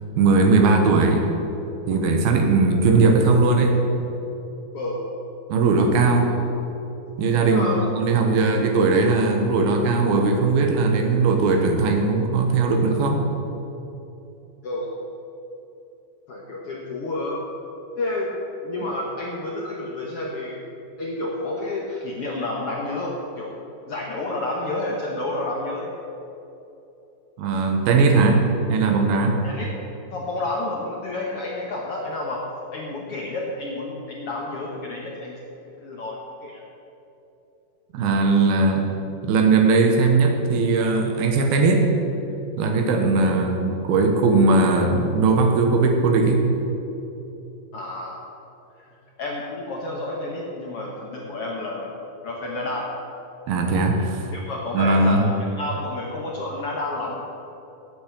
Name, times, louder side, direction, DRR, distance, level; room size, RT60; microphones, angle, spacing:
voice 1, 0.2-1.3 1.9-3.8 5.5-6.4 7.2-7.7 8.0-13.2 27.4-29.4 37.9-38.8 39.2-41.9 42.6-46.5 53.5-54.3 54.7-55.3, right 3 dB, 85° right, 3 dB, 3.0 m, -19 dB
voice 2, 7.5-7.8 14.6-14.9 16.3-17.5 18.0-18.3 18.6-20.7 21.0-23.5 23.9-25.9 29.4-29.7 30.1-32.5 32.7-36.6 47.7-48.4 48.8-48.9 49.2-51.9 52.2-52.9 54.3-57.2, left 2 dB, 75° left, -2 dB, 1.3 m, -30 dB
9.7 x 8.3 x 8.8 m, 2.9 s
omnidirectional pair, 4.3 m